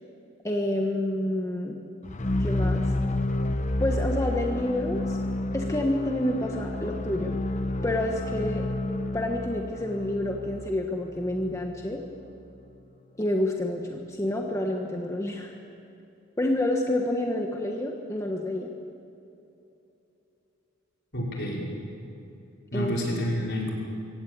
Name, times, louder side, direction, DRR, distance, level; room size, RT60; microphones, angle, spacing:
voice 1, 0.4-1.8 2.4-2.9 3.8-5.2 5.5-7.4 7.8-8.6 9.1-12.0 13.2-15.5 16.4-18.7 22.7-22.9, left 1 dB, 15° left, 1 dB, 1.4 m, -28 dB
sound 1, 2.0-12.1, left 2 dB, 35° left, 1.0 m, -30 dB
voice 2, 21.1-21.6 22.7-23.7, equal, 55° left, -2 dB, 5.6 m, -29 dB
24.0 x 17.0 x 8.8 m, 2.8 s
head